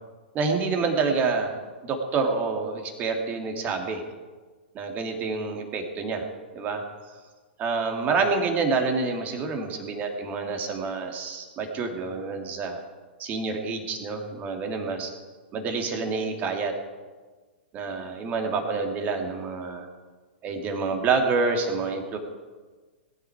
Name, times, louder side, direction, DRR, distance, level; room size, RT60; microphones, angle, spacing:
voice 1, 0.3-4.0 4.7-6.2 6.5-6.8 7.6-12.8 13.2-15.1 15.5-16.7 17.7-19.9 20.4-22.2, right 4 dB, 25° right, 3 dB, 2.5 m, -27 dB
20.0 x 10.5 x 4.8 m, 1.4 s
figure-of-eight pair, 110°, 6 cm